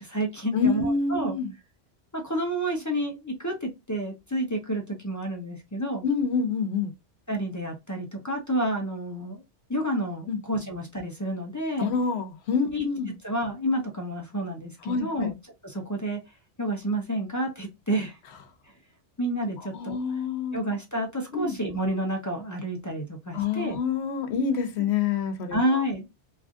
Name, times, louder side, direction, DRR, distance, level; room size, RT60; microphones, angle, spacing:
voice 1, 0.0-1.4 2.1-6.0 7.3-9.4 9.7-11.9 12.7-12.9 13.2-15.4 15.6-16.2 16.6-18.2 19.2-20.0 20.5-23.8 25.5-26.1, right 1 dB, 25° left, 0.4 m, -29 dB
voice 2, 0.5-1.5 6.0-6.9 10.3-10.4 11.8-13.1 14.8-15.3 19.7-20.6 21.3-21.6 23.3-25.8, left 5 dB, 70° left, 0.9 m, -27 dB
3.0 x 2.5 x 2.4 m
omnidirectional pair, 1.2 m